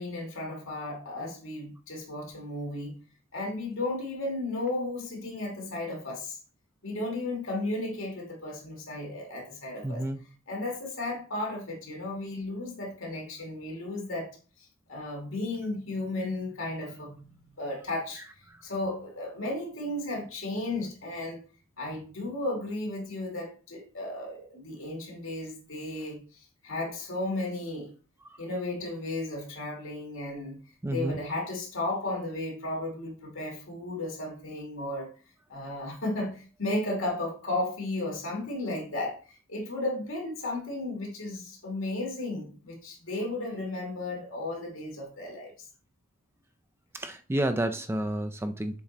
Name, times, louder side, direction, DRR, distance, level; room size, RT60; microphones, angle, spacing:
voice 1, 0.0-3.0 3.3-6.4 6.8-10.1 10.5-14.3 14.6-21.4 21.8-27.9 28.4-30.6 30.9-35.1 35.5-45.5, left 2 dB, 65° left, -1 dB, 2.7 m, -34 dB
voice 2, 9.8-10.2 28.3-28.4 30.8-31.2 46.9-48.8, right 1 dB, 10° right, 8 dB, 0.4 m, -30 dB
7.3 x 3.8 x 4.2 m, 0.38 s
head